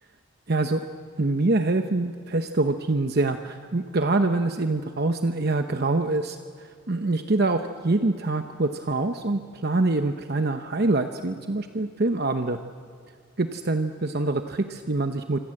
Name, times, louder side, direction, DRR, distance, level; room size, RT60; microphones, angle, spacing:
voice 1, 0.5-0.8 1.2-12.6 13.4-15.4, right 2 dB, 50° right, 7 dB, 0.9 m, -25 dB
26.0 x 26.0 x 7.8 m, 2.1 s
head